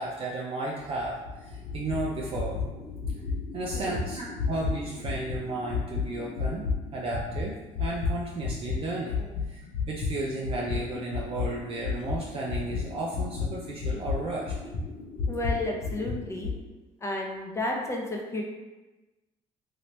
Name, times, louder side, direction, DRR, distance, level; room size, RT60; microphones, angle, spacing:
voice 1, 0.0-2.6 3.5-6.7 6.9-9.2 9.5-9.6 9.9-14.5, right 2 dB, 45° right, -3 dB, 0.5 m, -33 dB
sound 1, 0.8-8.8 9.1-16.6, left 4 dB, 75° left, 0.8 m, -33 dB
voice 2, 15.3-16.5 17.0-18.4, left 2 dB, 20° left, -1 dB, 0.7 m, -32 dB
2.9 x 2.7 x 3.2 m, 1.2 s
cardioid pair, 100°, 13 cm